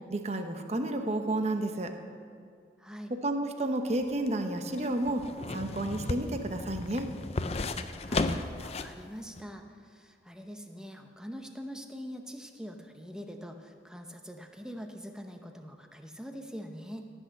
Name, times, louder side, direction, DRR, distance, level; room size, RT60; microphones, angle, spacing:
voice 1, 0.1-1.9 3.1-5.2 5.5-7.1, right 1 dB, 35° right, 6 dB, 0.8 m, -31 dB
voice 2, 2.8-3.1 8.1-8.2 8.6-17.1, equal, 5° right, 4 dB, 0.8 m, -44 dB
sound 1, 3.9-9.0 9.4-9.5, left 3 dB, 35° left, 0.5 m, -34 dB
16.5 x 6.3 x 7.8 m, 2.2 s
head